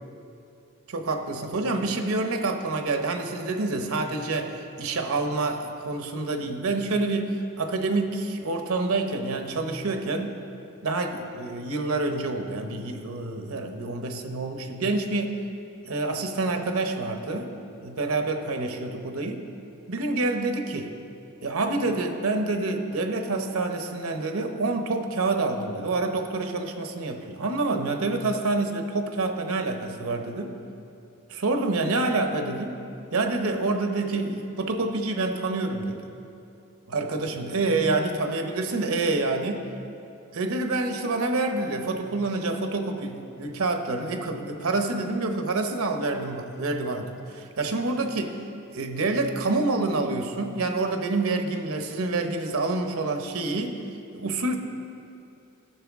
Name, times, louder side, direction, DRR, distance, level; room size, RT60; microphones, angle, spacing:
voice 1, 0.9-10.3 10.8-15.4 15.8-17.5 17.8-19.4 19.9-20.9 21.4-30.5 31.3-32.8 33.1-36.0 36.9-39.6 40.3-48.4 48.7-53.8 54.1-54.6, right 2 dB, 70° right, 5 dB, 0.8 m, -27 dB
14.5 x 6.6 x 3.5 m, 2.7 s
head